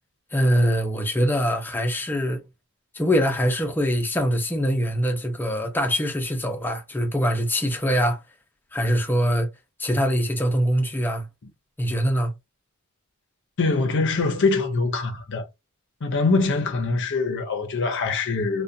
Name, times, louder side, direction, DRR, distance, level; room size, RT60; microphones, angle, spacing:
voice 1, 0.3-2.4 2.9-8.2 8.7-9.5 9.8-11.2 11.8-12.3, equal, 10° left, 0.5 m, -23 dB
voice 2, 13.6-15.5 16.0-18.6, left 3 dB, 55° left, 0.6 m, -23 dB
2.4 x 2.1 x 2.5 m
head